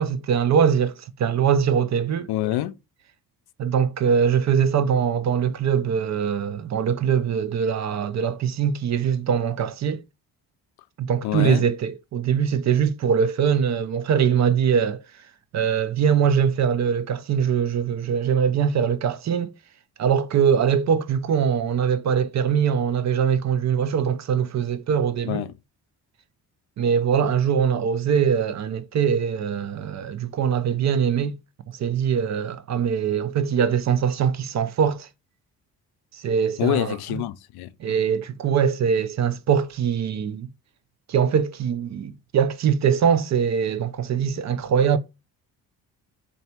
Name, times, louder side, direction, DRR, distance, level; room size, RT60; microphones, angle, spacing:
voice 1, 0.0-2.3 3.6-10.0 11.0-15.0 15.5-19.5 20.0-25.4 26.8-31.4 31.7-35.1 36.1-37.2 37.8-40.5 41.1-45.0, right 7 dB, 45° right, 0.5 m, -22 dB
voice 2, 2.3-2.8 11.2-11.6 25.3-25.5 36.6-37.7, left 15 dB, 75° left, 0.5 m, -26 dB
3.3 x 2.6 x 4.2 m
cardioid pair, 75°, 38 cm